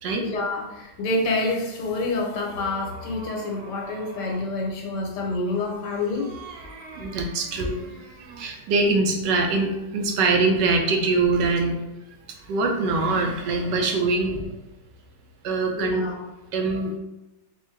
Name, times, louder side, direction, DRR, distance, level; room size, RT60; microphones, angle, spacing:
voice 1, 0.2-6.3 15.8-16.1, left 2 dB, 80° left, 0 dB, 1.4 m, -27 dB
sound 1, 1.5-4.5 5.4-8.6, right 3 dB, 70° right, 0.5 m, -44 dB
voice 2, 7.0-7.8 8.4-11.8 12.5-14.5 15.4-16.1 16.5-16.9, right 3 dB, 90° right, 2 dB, 1.3 m, -23 dB
4.4 x 2.4 x 3.2 m, 0.97 s
omnidirectional pair, 1.8 m